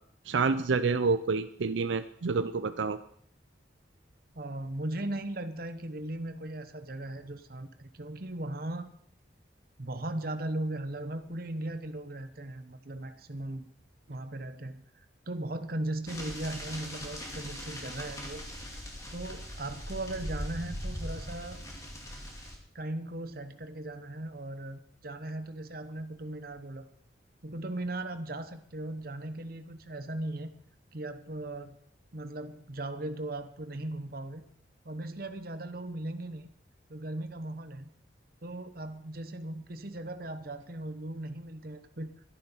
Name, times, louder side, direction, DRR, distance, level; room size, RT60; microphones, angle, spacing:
voice 1, 0.3-3.0, right 4 dB, 80° right, 11 dB, 0.5 m, -28 dB
voice 2, 4.3-8.9 9.8-13.7 14.1-14.9 15.3-18.4 19.1-21.6 22.7-26.9 27.4-30.5 30.9-31.8 32.1-34.4 34.8-36.5 36.9-37.9 38.4-42.2, right 1 dB, 50° right, 9 dB, 1.1 m, -38 dB
sound 1, 16.1-22.6, equal, 15° left, 2.4 m, -40 dB
12.5 x 11.0 x 5.7 m, 0.63 s
head